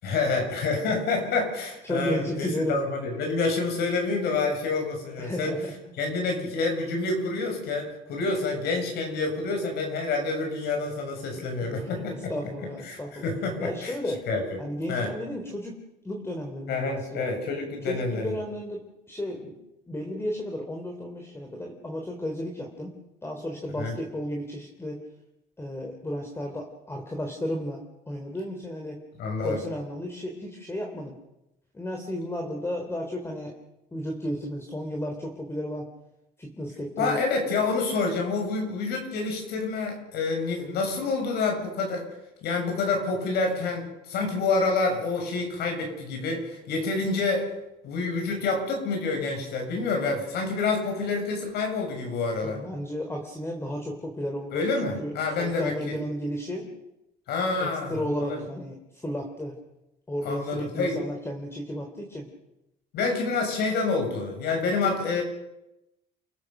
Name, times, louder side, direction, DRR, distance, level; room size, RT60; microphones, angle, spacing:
voice 1, 0.0-5.6 6.0-14.0 14.3-14.4 14.9-15.1 16.7-18.4 23.8-24.0 29.2-29.6 37.0-42.1 42.4-47.5 47.8-52.6 54.5-56.0 57.3-58.4 60.2-61.0 62.9-65.2, left 3 dB, 75° left, 3 dB, 7.3 m, -28 dB
voice 2, 1.8-2.8 5.2-5.6 12.3-13.3 13.6-14.2 14.6-17.3 17.9-19.5 19.9-23.0 23.2-25.0 25.6-29.0 29.4-31.1 31.7-33.5 33.9-35.9 36.4-37.2 52.4-56.7 57.6-58.8 59.0-59.5 60.1-62.2, equal, 15° left, 2 dB, 3.7 m, -33 dB
29.0 x 15.5 x 6.7 m, 0.91 s
cardioid pair, 110°, 17 cm